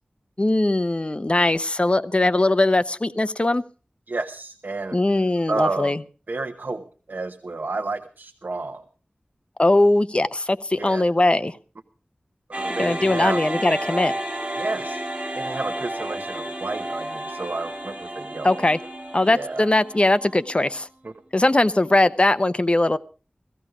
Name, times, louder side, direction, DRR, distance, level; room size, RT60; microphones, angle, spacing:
voice 1, 0.4-3.6 4.9-6.0 9.6-11.5 12.8-14.1 18.4-18.8 19.1-20.9 21.3-23.0, left 2 dB, 35° left, 13 dB, 0.8 m, -20 dB
voice 2, 4.1-5.0 5.5-5.9 6.3-8.8 10.8-11.0 12.5-13.4 14.6-15.0 15.3-18.6 19.3-19.7 21.0-21.1, right 3 dB, 70° right, 7 dB, 1.0 m, -30 dB
sound 1, 12.5-20.8, right 1 dB, 35° right, 6.5 m, -32 dB
17.0 x 15.0 x 4.9 m, 0.37 s
wide cardioid pair, 50°, 3 cm